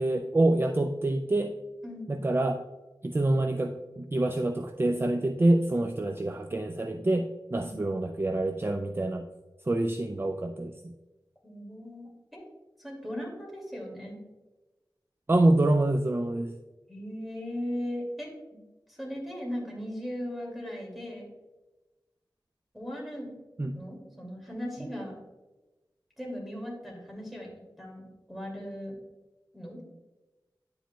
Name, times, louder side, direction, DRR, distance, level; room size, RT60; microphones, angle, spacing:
voice 1, 0.0-1.5 2.1-2.6 3.0-9.2 9.7-10.7 15.3-16.5 23.6-23.7, right 2 dB, 30° right, 6 dB, 0.4 m, -26 dB
voice 2, 1.8-2.2 7.7-7.9 11.4-12.4 12.8-14.2 16.9-18.3 18.9-21.3 22.7-23.3 23.7-25.2 26.2-27.5 27.8-29.0 29.5-29.8, equal, ahead, -2 dB, 2.3 m, -38 dB
10.0 x 5.0 x 2.2 m, 1.1 s
wide cardioid pair, 60°, 8 cm